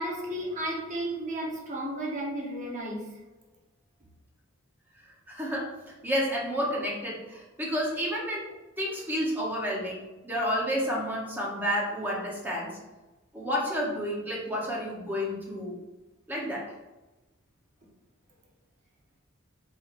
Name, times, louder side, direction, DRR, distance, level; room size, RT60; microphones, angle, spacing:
voice 1, 0.0-3.0, right 1 dB, 35° right, -2 dB, 1.1 m, -33 dB
voice 2, 5.3-5.7 6.0-8.5 8.8-12.8 13.3-15.7 16.3-16.6, equal, 10° right, -4 dB, 1.0 m, -30 dB
4.7 x 4.3 x 2.6 m, 1.1 s
head